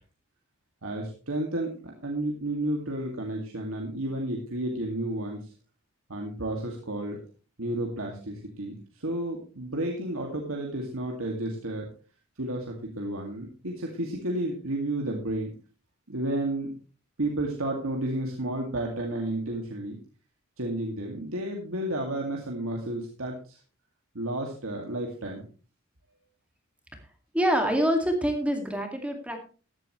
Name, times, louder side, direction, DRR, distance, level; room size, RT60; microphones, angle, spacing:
voice 1, 0.8-5.5 6.1-7.2 7.6-11.9 12.4-15.5 16.1-16.8 17.2-20.0 20.6-23.6 24.1-25.5, right 1 dB, 80° right, 1 dB, 2.2 m, -32 dB
voice 2, 27.3-29.4, equal, 5° right, 4 dB, 2.1 m, -25 dB
14.5 x 11.5 x 3.1 m, 0.37 s
head